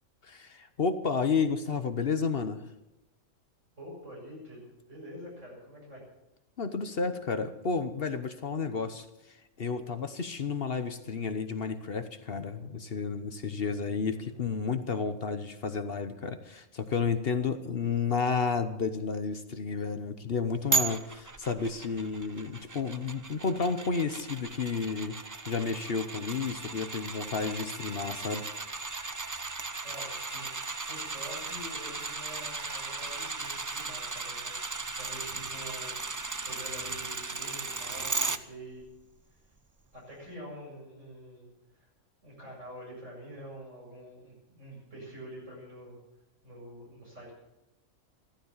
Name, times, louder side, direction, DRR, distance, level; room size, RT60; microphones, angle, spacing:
voice 1, 0.2-2.7 6.6-25.2 25.5-28.5, left 5 dB, 50° left, 10 dB, 1.1 m, -31 dB
voice 2, 3.8-6.0 14.0-14.4 29.8-38.8 39.9-41.9 42.2-46.0 46.4-47.3, equal, 75° right, -2 dB, 7.8 m, -46 dB
sound 1, 20.7-38.4 38.8-38.9, right 3 dB, 25° right, 0.4 m, -36 dB
15.0 x 13.5 x 7.2 m, 0.93 s
omnidirectional pair, 1.3 m